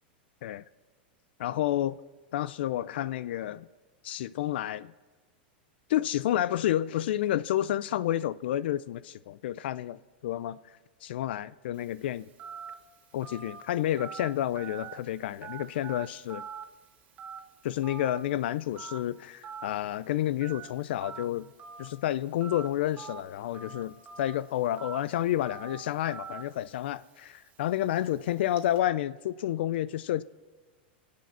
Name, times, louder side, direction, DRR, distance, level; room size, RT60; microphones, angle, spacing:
voice 1, 1.4-2.0 2.3-3.7 4.0-4.9 5.9-10.6 11.0-12.3 13.1-16.4 17.6-21.5 21.8-30.2, left 12 dB, 75° left, 0.4 m, -30 dB
Telephone, 11.7-28.8, right 6 dB, 25° right, 1.7 m, -47 dB
25.5 x 8.6 x 6.1 m
supercardioid pair, 145°, 6 cm